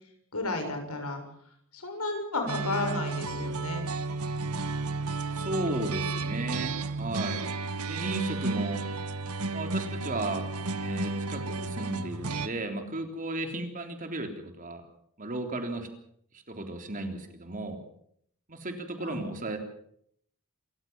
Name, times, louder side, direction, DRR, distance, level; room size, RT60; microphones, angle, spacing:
voice 1, 0.3-1.2 1.7-3.9 19.0-19.2, left 2 dB, 85° left, 5 dB, 6.7 m, -32 dB
sound 1, 2.5-12.5, right 3 dB, 85° right, 1.4 m, -32 dB
voice 2, 5.3-7.5 7.8-8.8 9.5-10.4 10.8-14.8 15.2-15.9 16.3-17.8 18.5-19.6, right 2 dB, 35° right, 5 dB, 3.5 m, -34 dB
27.0 x 15.0 x 7.4 m, 0.68 s
head